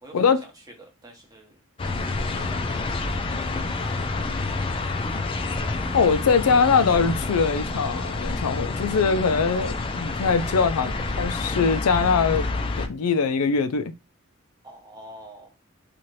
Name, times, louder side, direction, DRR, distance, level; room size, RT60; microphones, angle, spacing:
voice 1, 0.0-1.6 2.2-4.1 4.5-5.2 14.6-15.6, right 1 dB, 15° right, 0.8 m, -47 dB
sound 1, 1.8-12.9, left 3 dB, 25° left, 0.3 m, -28 dB
voice 2, 5.9-12.5 12.8-13.9, left 5 dB, 90° left, 0.4 m, -22 dB
2.7 x 2.5 x 3.0 m
head